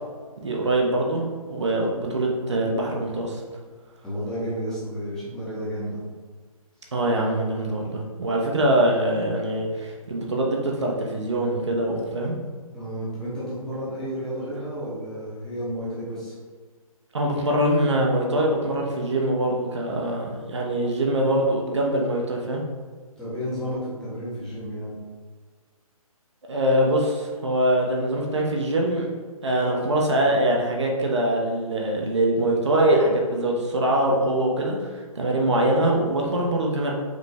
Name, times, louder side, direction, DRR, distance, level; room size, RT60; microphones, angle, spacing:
voice 1, 0.4-3.4 6.9-12.4 17.1-22.6 26.5-29.1 29.4-36.9, right 1 dB, 50° right, -1 dB, 0.9 m, -23 dB
voice 2, 4.0-6.0 8.5-8.7 12.7-16.3 23.2-24.9, equal, 5° left, -10 dB, 1.0 m, -32 dB
5.2 x 3.1 x 3.4 m, 1.5 s
figure-of-eight pair, 140°, 19 cm